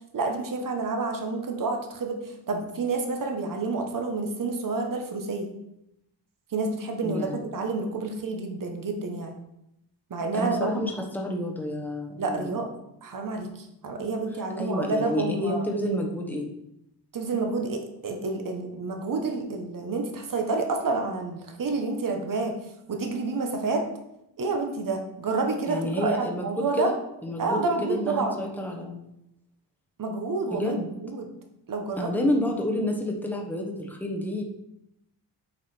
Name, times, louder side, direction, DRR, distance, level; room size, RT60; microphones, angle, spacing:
voice 1, 0.1-5.5 6.5-9.3 10.1-10.8 12.2-12.7 13.0-15.7 17.1-22.5 22.9-23.9 24.4-26.9 27.4-28.4 30.0-31.3 31.7-32.1, right 3 dB, 45° right, 4 dB, 1.2 m, -29 dB
voice 2, 7.0-7.4 10.3-12.6 14.6-16.5 25.7-26.9 27.2-29.0 30.5-30.9 32.0-34.4, left 1 dB, 5° left, 1 dB, 1.1 m, -29 dB
8.9 x 4.9 x 4.4 m, 0.84 s
wide cardioid pair, 155°, 44 cm